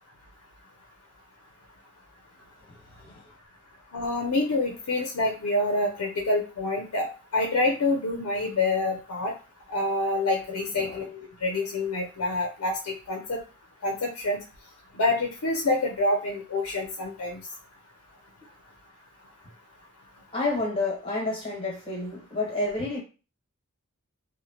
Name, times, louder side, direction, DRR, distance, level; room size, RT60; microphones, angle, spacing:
voice 1, 2.7-3.2 10.8-11.0 20.3-23.0, left 2 dB, 25° left, -2 dB, 1.1 m, -30 dB
voice 2, 3.9-7.1 7.3-9.3 9.7-13.4 13.8-14.4 15.0-17.4, left 2 dB, 80° left, 1 dB, 0.5 m, -27 dB
3.0 x 2.1 x 2.8 m, 0.33 s
head